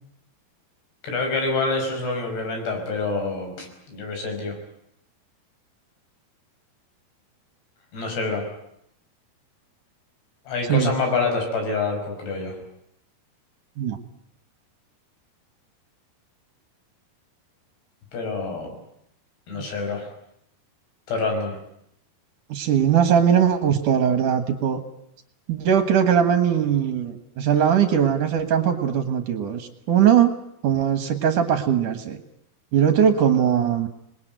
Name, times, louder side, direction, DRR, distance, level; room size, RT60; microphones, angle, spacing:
voice 1, 1.0-4.6 7.9-8.4 10.5-12.6 18.1-18.8 19.5-20.1 21.1-21.5, left 3 dB, 85° left, 3 dB, 7.7 m, -26 dB
voice 2, 22.5-24.8 25.5-30.3 30.6-32.2 32.7-33.9, right 8 dB, 60° right, 8 dB, 2.6 m, -20 dB
26.5 x 20.5 x 9.2 m, 0.77 s
omnidirectional pair, 4.7 m